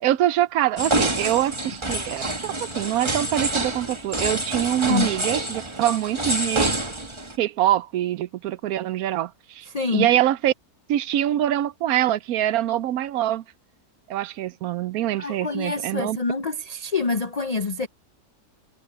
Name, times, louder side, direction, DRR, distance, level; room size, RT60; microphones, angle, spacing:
voice 1, 0.0-6.7 7.4-9.6 9.9-10.5 10.9-13.4 14.1-16.2, right 12 dB, 70° right, 1.0 m, -24 dB
sound 1, 0.8-7.4, right 2 dB, 20° right, 1.4 m, -27 dB
voice 2, 9.7-10.1 15.2-17.9, left 4 dB, 75° left, 0.3 m, -26 dB
omnidirectional pair, 1.7 m